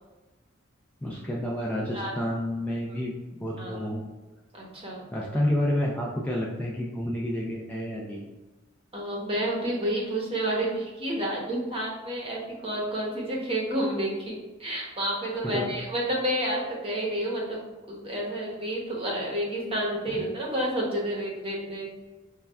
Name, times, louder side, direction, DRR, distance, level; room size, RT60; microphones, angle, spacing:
voice 1, 1.0-3.1 3.4-4.0 5.1-8.3 15.4-15.7, left 1 dB, 10° left, -4 dB, 0.3 m, -29 dB
voice 2, 4.5-5.0 5.3-5.4 8.9-17.6 17.9-21.9, right 1 dB, 30° right, -3 dB, 0.8 m, -30 dB
5.2 x 2.2 x 2.2 m, 1.2 s
head